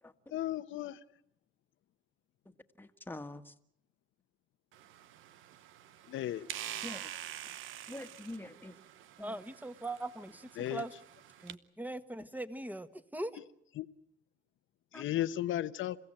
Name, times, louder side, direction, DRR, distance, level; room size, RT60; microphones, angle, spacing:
voice 1, 0.3-1.0 6.1-6.6 10.6-10.8 13.8-13.9 14.9-16.0, left 13 dB, 80° left, 13 dB, 1.0 m, -35 dB
voice 2, 2.5-3.5 6.8-7.1 7.9-8.8 9.2-9.4 14.9-15.1, left 1 dB, 10° left, 7 dB, 1.7 m, -46 dB
sound 1, 4.7-11.5, right 12 dB, 90° right, 1.0 m, -47 dB
voice 3, 9.2-10.9 11.4-13.4, right 2 dB, 10° right, 11 dB, 1.6 m, -41 dB
28.5 x 16.0 x 8.9 m, 0.78 s
cardioid pair, 90°, 20 cm